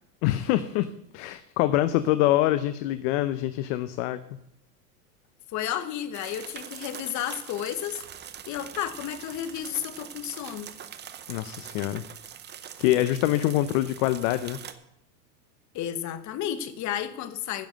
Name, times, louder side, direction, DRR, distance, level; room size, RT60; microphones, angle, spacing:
voice 1, 0.2-0.9 1.1-4.2 11.3-12.0 12.8-14.6, left 14 dB, 50° left, 11 dB, 0.7 m, -25 dB
voice 2, 5.5-8.0 8.5-10.7 15.7-17.7, left 10 dB, 35° left, 12 dB, 1.2 m, -32 dB
sound 1, 6.1-14.7, right 9 dB, 20° right, 0.8 m, -43 dB
10.5 x 7.3 x 7.7 m, 0.78 s
supercardioid pair, 125°, 48 cm